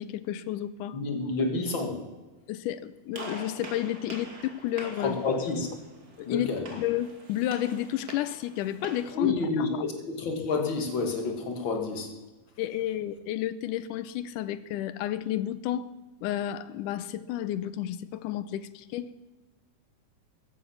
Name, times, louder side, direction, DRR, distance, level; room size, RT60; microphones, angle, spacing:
voice 1, 0.0-1.0 2.5-5.2 6.2-9.8 12.6-15.9 16.2-19.2, left 12 dB, 90° left, 15 dB, 2.2 m, -31 dB
voice 2, 0.9-2.1 5.0-5.7 6.3-6.7 9.1-12.1, left 3 dB, 45° left, 3 dB, 2.2 m, -29 dB
Gunshot gunfire, 3.1-9.2, right 3 dB, 35° right, 2.2 m, -44 dB
14.5 x 11.5 x 7.1 m, 1.2 s
omnidirectional pair, 3.6 m